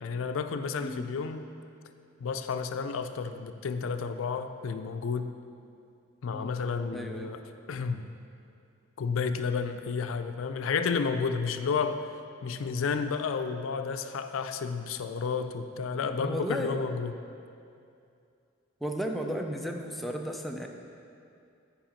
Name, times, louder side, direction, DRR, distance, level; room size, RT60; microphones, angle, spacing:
voice 1, 0.0-1.5 2.2-5.3 6.2-7.4 7.7-8.1 9.0-12.1 12.4-17.1, left 5 dB, 85° left, 9 dB, 0.4 m, -31 dB
voice 2, 6.9-7.3 16.2-16.8 18.8-20.7, equal, ahead, 1 dB, 0.4 m, -34 dB
8.9 x 4.8 x 5.1 m, 2.5 s
head